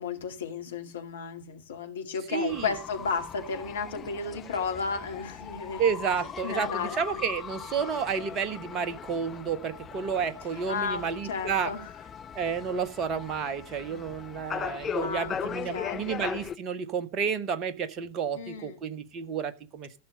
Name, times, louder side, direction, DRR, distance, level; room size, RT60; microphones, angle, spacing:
voice 1, 0.0-5.8 6.4-7.2 10.7-11.9 15.0-16.4 18.3-18.8, left 5 dB, 65° left, 2.1 m, -34 dB
voice 2, 2.3-2.7 5.8-11.7 12.3-20.0, right 6 dB, 35° right, 1.4 m, -31 dB
sound 1, 2.5-16.6, left 8 dB, 25° left, 0.7 m, -39 dB
15.0 x 6.4 x 6.5 m
figure-of-eight pair, 90°, 0 cm